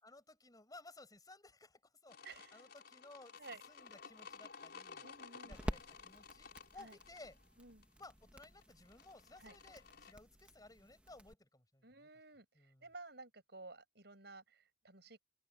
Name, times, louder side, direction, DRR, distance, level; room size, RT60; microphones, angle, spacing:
voice 1, 0.0-3.4 3.7-5.0 5.4-7.4 8.0-12.1 12.5-12.9, left 2 dB, 20° left, 6.2 m, -58 dB
sound 1, 2.1-10.1, left 5 dB, 60° left, 5.2 m, -55 dB
voice 2, 2.2-2.6 3.4-3.6 5.0-5.6 6.7-7.0 7.6-7.8 9.4-9.6 11.8-12.4 12.8-15.2, right 3 dB, 65° right, 7.9 m, -54 dB
sound 2, 3.4-11.3, equal, 5° right, 1.9 m, -50 dB
open air
head